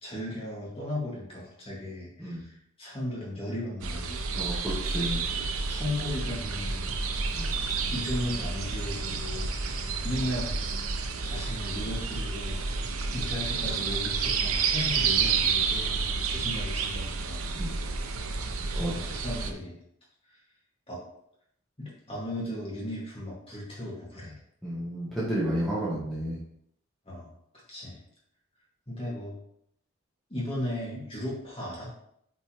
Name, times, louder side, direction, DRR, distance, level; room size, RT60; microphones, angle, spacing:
voice 1, 0.0-4.3 5.3-5.4 5.7-6.9 7.9-9.5 10.0-12.6 13.1-17.4 18.7-19.8 20.3-20.4 20.9-21.0 21.8-24.4 27.1-27.3 27.7-28.0 28.9-29.4 30.3-31.9, left 1 dB, 25° left, -5 dB, 2.0 m, -36 dB
sound 1, 3.8-19.5, right 5 dB, 85° right, 0.8 m, -30 dB
voice 2, 4.3-5.2 7.3-7.5 17.6-17.7 18.7-18.9 24.6-26.4, right 1 dB, ahead, -9 dB, 1.5 m, -31 dB
8.4 x 4.3 x 3.0 m, 0.72 s
head